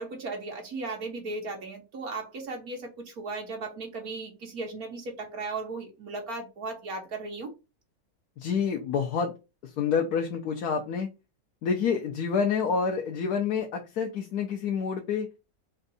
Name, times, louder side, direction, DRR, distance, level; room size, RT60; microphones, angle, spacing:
voice 1, 0.0-7.5, right 3 dB, 70° right, 1.9 m, -36 dB
voice 2, 8.4-9.3 9.6-11.1 11.6-15.3, left 6 dB, 80° left, 1.3 m, -28 dB
4.5 x 2.6 x 4.0 m
omnidirectional pair, 1.6 m